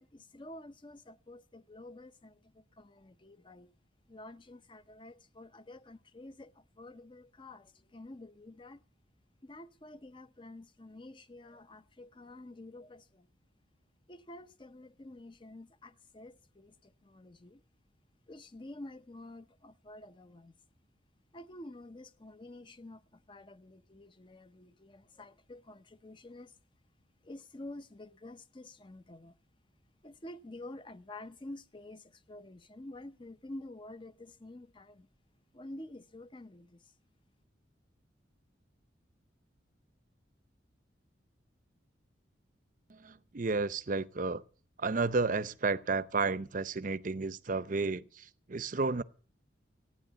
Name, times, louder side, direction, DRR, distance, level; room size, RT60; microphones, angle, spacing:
voice 1, 0.0-3.7 4.1-8.8 9.4-13.3 14.1-17.6 18.3-20.5 21.3-26.6 27.2-29.4 30.0-35.1 35.5-36.9, left 1 dB, 25° left, 0.6 m, -49 dB
voice 2, 42.9-44.4 44.8-49.0, right 3 dB, 45° right, 0.6 m, -32 dB
15.5 x 9.9 x 8.0 m
head